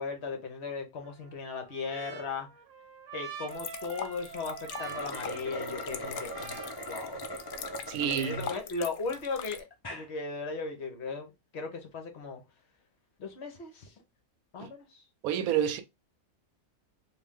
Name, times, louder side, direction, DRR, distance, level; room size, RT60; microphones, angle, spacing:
voice 1, 0.0-2.5 3.1-6.6 6.9-7.2 8.1-12.4 13.2-13.9 14.5-15.0, left 4 dB, 55° left, 1.0 m, -37 dB
Trumpet, 1.0-7.8, right 7 dB, 65° right, 1.1 m, -46 dB
sound 1, 3.5-9.6, left 8 dB, 80° left, 1.0 m, -43 dB
sound 2, 4.7-8.6 9.1-9.2 9.7-10.1, equal, 30° left, 0.4 m, -40 dB
voice 2, 7.9-8.5 14.6-14.7 15.2-15.8, right 9 dB, 90° right, 1.1 m, -29 dB
3.1 x 2.6 x 3.6 m
omnidirectional pair, 1.5 m